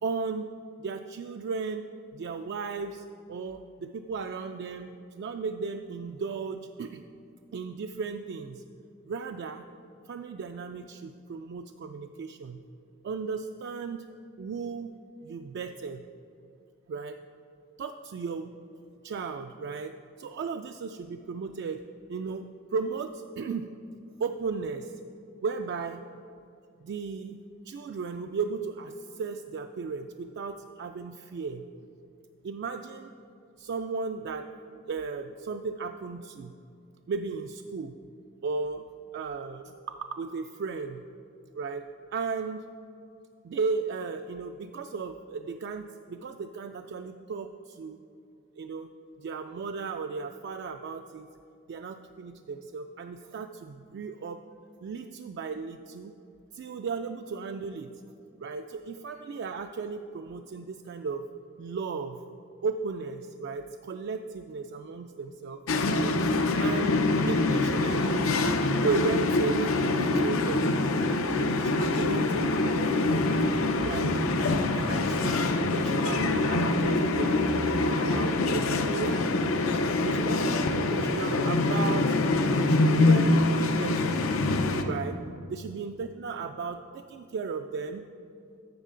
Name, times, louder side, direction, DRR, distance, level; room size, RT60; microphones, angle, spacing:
voice 1, 0.0-7.0 7.5-8.6 9.1-9.6 10.1-12.6 13.0-14.0 14.4-14.9 15.2-16.1 16.9-17.2 17.8-18.5 19.0-21.8 22.1-23.7 24.2-25.0 25.4-26.0 26.8-27.4 27.6-31.7 32.4-33.1 33.6-34.5 34.7-36.5 37.1-38.0 38.4-38.8 39.1-41.0 41.5-41.8 42.1-42.7 43.4-48.0 48.6-48.9 49.2-51.3 51.7-54.4 54.8-56.1 56.5-57.9 58.4-61.3 61.6-62.2 62.6-66.1 66.6-68.2 68.8-70.7 71.4-73.6 73.8-74.1 74.7-79.3 80.1-84.2 84.8-85.2 85.5-88.1, right 4 dB, 55° right, 6 dB, 0.3 m, -35 dB
sound 1, 65.7-84.8, left 2 dB, 90° left, 0.6 m, -25 dB
12.0 x 7.3 x 3.7 m, 2.5 s
head